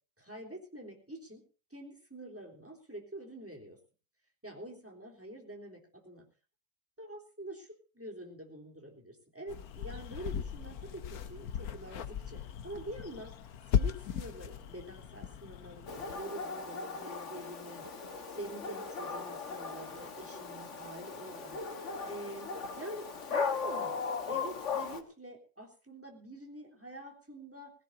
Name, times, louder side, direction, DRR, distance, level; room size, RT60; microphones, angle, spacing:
voice 1, 0.2-1.4 1.7-3.8 4.4-6.3 7.0-13.3 13.7-17.9 18.3-24.0 24.3-27.7, right 1 dB, 5° right, 0 dB, 3.5 m, -46 dB
sound 1, 9.5-16.2, left 8 dB, 60° left, 1.2 m, -37 dB
Dog, 15.9-25.0, left 5 dB, 40° left, 1.6 m, -38 dB
20.5 x 16.5 x 2.7 m, 0.36 s
omnidirectional pair, 2.0 m